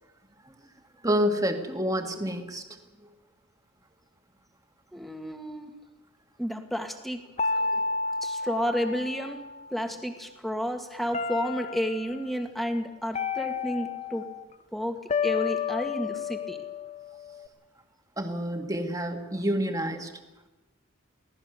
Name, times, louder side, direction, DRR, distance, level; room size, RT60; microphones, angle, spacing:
voice 1, 1.0-2.6 7.6-7.8 18.2-20.1, equal, 15° right, 4 dB, 2.0 m, -28 dB
voice 2, 4.9-5.7 6.4-7.6 8.2-9.4 9.7-14.2 14.7-16.6, equal, ahead, 4 dB, 2.0 m, -31 dB
sound 1, 7.4-9.7 11.1-12.2 13.1-14.4 15.1-17.5, left 5 dB, 30° left, 0.7 m, -31 dB
24.0 x 17.5 x 6.9 m, 1.1 s
head